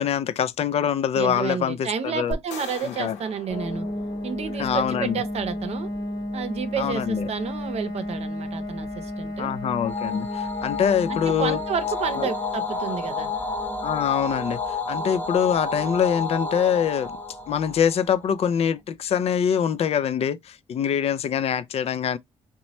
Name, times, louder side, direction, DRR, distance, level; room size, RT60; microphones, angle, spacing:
voice 1, 0.0-2.4 2.8-3.2 4.6-5.2 6.8-7.3 9.4-11.6 12.2-12.3 13.8-17.2 17.5-22.2, left 8 dB, 60° left, 0.4 m, -24 dB
voice 2, 1.1-3.9 4.2-5.9 6.3-9.5 11.1-13.3, right 7 dB, 65° right, 0.7 m, -30 dB
sound 1, 2.3-4.7, left 3 dB, 90° left, 0.8 m, -38 dB
sound 2, 3.5-18.1, left 1 dB, 40° left, 1.1 m, -34 dB
sound 3, 9.8-18.4, left 3 dB, 15° left, 0.8 m, -31 dB
3.0 x 2.2 x 4.1 m
cardioid pair, 85°, 12 cm